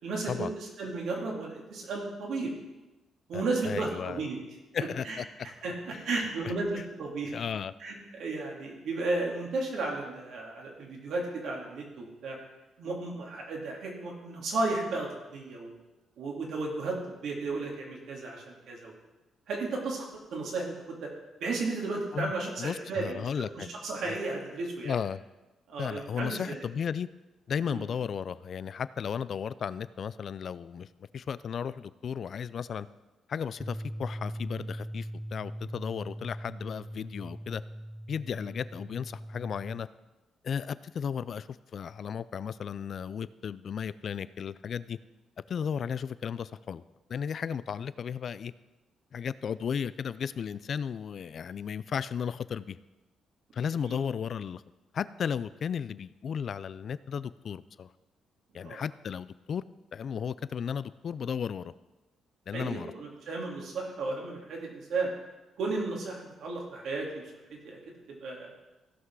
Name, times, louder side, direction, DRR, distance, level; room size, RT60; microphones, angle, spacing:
voice 1, 0.0-2.5 3.3-4.4 5.0-5.2 5.6-7.3 7.8-12.4 12.8-15.7 16.2-18.9 19.5-20.1 20.3-21.1 21.4-24.9 25.7-26.6 27.7-27.8 53.8-54.0 58.6-58.8 62.5-65.1 65.6-67.2 67.5-67.8 68.1-68.5, right 3 dB, 70° right, -1 dB, 2.8 m, -34 dB
voice 2, 3.3-4.2 4.7-5.3 5.9-6.5 7.3-7.7 22.1-22.3 22.6-23.7 24.1-24.2 24.8-25.2 25.8-27.1 27.5-30.9 31.1-32.9 33.3-37.6 38.1-39.9 40.4-45.0 45.5-46.8 47.1-48.5 49.1-52.8 53.5-54.6 54.9-57.9 58.5-59.6 59.9-61.7 62.5-62.9, left 7 dB, 55° left, 17 dB, 0.4 m, -34 dB
sound 1, 33.6-39.9, equal, 5° right, 0.5 m, -40 dB
16.0 x 5.9 x 4.8 m, 1.1 s
cardioid pair, 90°, 0 cm